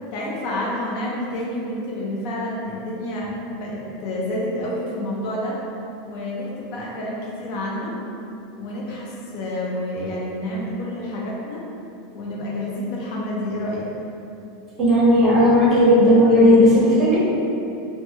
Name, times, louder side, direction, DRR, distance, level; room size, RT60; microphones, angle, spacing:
voice 1, 0.1-5.6 6.0-7.9 8.6-11.6 12.1-13.9, left 1 dB, 50° left, -4 dB, 0.5 m, -29 dB
voice 2, 14.8-17.2, equal, 20° right, -7 dB, 0.6 m, -14 dB
3.1 x 2.2 x 2.7 m, 2.8 s
supercardioid pair, 165°, 0 cm